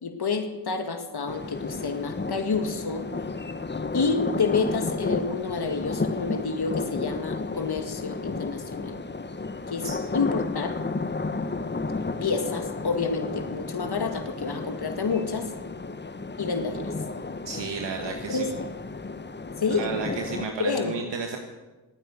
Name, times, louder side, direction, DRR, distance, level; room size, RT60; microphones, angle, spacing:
voice 1, 0.0-3.1 3.9-9.0 9.7-9.9 10.1-10.8 12.2-15.5 16.4-16.9 18.3-18.5 19.6-19.9 20.6-21.0, left 4 dB, 65° left, 6 dB, 2.0 m, -28 dB
sound 1, 1.3-20.5, left 3 dB, 25° left, 1.0 m, -32 dB
voice 2, 17.4-18.5 19.7-21.4, right 5 dB, 90° right, 3 dB, 1.5 m, -33 dB
16.0 x 9.7 x 9.4 m, 1.2 s
cardioid pair, 50°, 42 cm